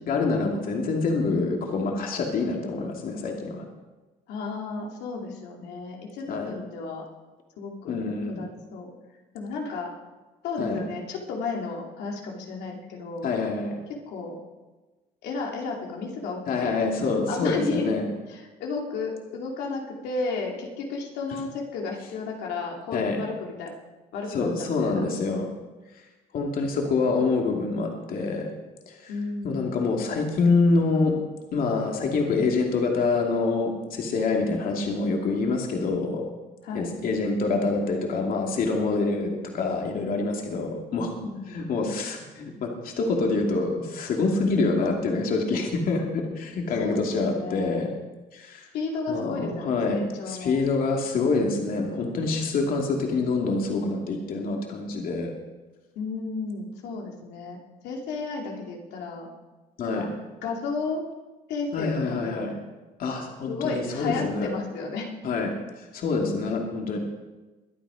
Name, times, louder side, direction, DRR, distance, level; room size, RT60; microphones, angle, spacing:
voice 1, 0.1-3.6 6.3-6.5 7.9-8.4 10.6-10.8 13.2-13.7 16.5-18.1 22.9-23.2 24.3-25.4 26.3-28.5 28.9-29.1 29.4-31.1 31.5-36.2 36.7-41.1 41.5-47.9 48.3-48.7 49.1-50.0 50.3-55.3 59.8-60.1 61.7-62.5 63.0-64.5 65.2-65.5 65.8-67.0, left 3 dB, 60° left, 1 dB, 2.6 m, -26 dB
voice 2, 4.3-7.0 7.6-8.9 9.3-9.9 10.4-13.3 13.9-14.4 15.2-16.8 17.3-18.0 18.3-23.7 24.1-25.0 29.1-29.7 36.6-36.9 41.2-41.7 46.8-47.9 48.7-50.6 56.0-57.6 57.8-59.3 59.9-60.1 60.4-61.0 61.5-62.5 63.5-65.1, left 4 dB, 80° left, -1 dB, 2.7 m, -33 dB
22.5 x 9.1 x 5.0 m, 1.2 s
cardioid pair, 110°, 17 cm